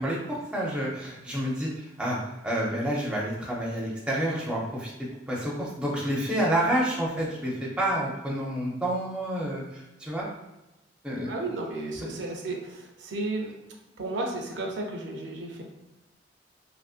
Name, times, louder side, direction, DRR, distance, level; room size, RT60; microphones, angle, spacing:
voice 1, 0.0-2.2 2.4-4.9 5.3-10.3 11.0-11.3, right 1 dB, 5° right, -5 dB, 0.5 m, -29 dB
voice 2, 11.3-13.5 14.0-15.6, right 2 dB, 65° right, 1 dB, 0.5 m, -33 dB
2.9 x 2.5 x 2.4 m, 0.98 s
head